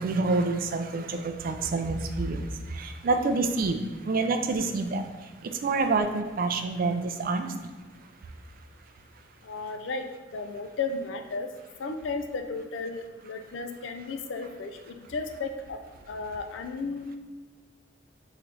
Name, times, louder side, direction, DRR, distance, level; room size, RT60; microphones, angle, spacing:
voice 1, 0.0-3.8 4.0-5.1 5.4-7.5, right 3 dB, 50° right, 7 dB, 0.4 m, -27 dB
voice 2, 9.4-10.0 10.3-11.5 11.8-15.8 16.1-17.2, left 4 dB, 75° left, 6 dB, 0.4 m, -34 dB
3.8 x 3.1 x 4.6 m, 1.3 s
head